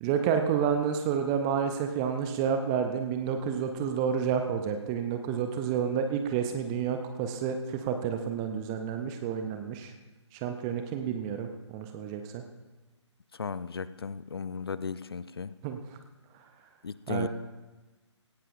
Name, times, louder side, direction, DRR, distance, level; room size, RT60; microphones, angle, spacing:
voice 1, 0.0-9.9 10.3-12.4 15.6-15.8 17.1-17.3, right 7 dB, 10° right, 6 dB, 0.4 m, -30 dB
voice 2, 13.4-15.5 16.8-17.3, left 5 dB, 55° left, 15 dB, 0.6 m, -35 dB
17.0 x 16.5 x 2.5 m, 1.2 s
figure-of-eight pair, 145°, 16 cm